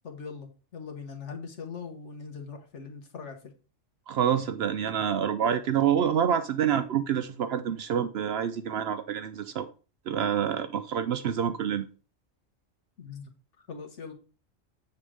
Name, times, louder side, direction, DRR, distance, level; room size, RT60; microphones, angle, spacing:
voice 1, 0.0-3.4 13.0-13.3 13.7-14.1, left 5 dB, 65° left, 1.5 m, -41 dB
voice 2, 4.1-9.7 10.1-11.9, right 8 dB, 65° right, 0.7 m, -27 dB
7.5 x 3.8 x 4.8 m
omnidirectional pair, 1.3 m